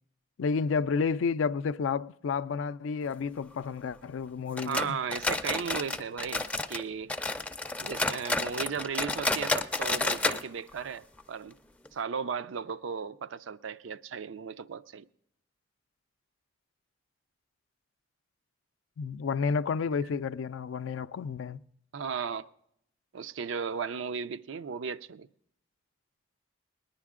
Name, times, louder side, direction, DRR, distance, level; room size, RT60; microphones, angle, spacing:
voice 1, 0.4-5.0 19.0-21.6, left 5 dB, 85° left, 0.4 m, -31 dB
sound 1, 4.6-6.8 7.1-10.4 10.7-10.8 11.2-11.3 11.9-12.0, left 2 dB, 5° left, 0.4 m, -30 dB
voice 2, 4.7-7.1 7.8-11.5 11.9-15.0 21.9-22.5 23.1-25.3, right 6 dB, 85° right, 0.4 m, -36 dB
19.5 x 10.5 x 3.6 m
head